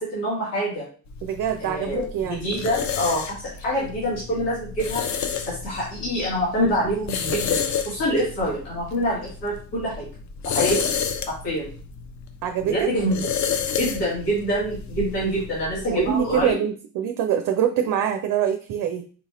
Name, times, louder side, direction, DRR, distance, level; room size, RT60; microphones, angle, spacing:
voice 1, 0.1-0.9 1.6-5.0 5.5-10.1 10.4-10.9 11.4-11.7 12.6-13.3 13.8-16.6, equal, 75° left, -7 dB, 2.0 m, -26 dB
sound 1, 1.1-16.5, left 7 dB, 40° left, 0.6 m, -31 dB
voice 2, 1.2-2.4 12.4-12.9 15.9-19.0, right 9 dB, 45° right, 6 dB, 0.5 m, -24 dB
4.2 x 4.0 x 2.5 m, 0.40 s
figure-of-eight pair, 40°, 47 cm